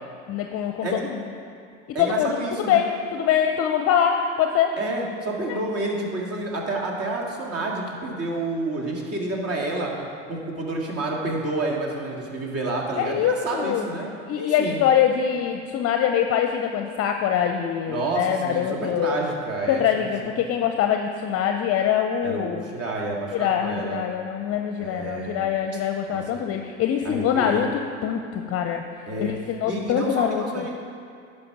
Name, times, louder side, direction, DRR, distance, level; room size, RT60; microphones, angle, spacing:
voice 1, 0.3-1.2 2.0-4.8 5.5-5.6 13.0-13.9 14.3-19.2 19.7-22.6 23.3-28.8 29.2-30.6, left 9 dB, 40° left, 5 dB, 0.6 m, -24 dB
voice 2, 1.9-2.8 4.8-9.9 10.3-14.1 14.4-14.8 17.9-20.3 22.2-24.0 24.8-25.4 25.7-25.8 26.1-26.4 27.0-27.7 29.1-29.3 29.7-30.8, right 2 dB, 40° right, -1 dB, 2.1 m, -29 dB
11.0 x 5.4 x 6.0 m, 2.4 s
hypercardioid pair, 80°, 37 cm